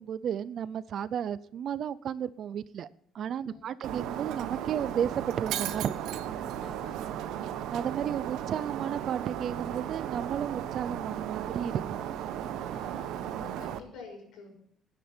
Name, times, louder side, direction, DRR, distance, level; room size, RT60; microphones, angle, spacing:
voice 1, 0.0-2.9 3.1-5.9 7.7-12.0, right 9 dB, 45° right, 17 dB, 0.5 m, -33 dB
Shatter, 3.8-13.8, right 10 dB, 80° right, 1.0 m, -35 dB
voice 2, 6.6-7.4 12.7-14.5, left 4 dB, 65° left, 2 dB, 6.1 m, -49 dB
19.5 x 10.0 x 4.4 m, 0.70 s
cardioid pair, 180°, 0 cm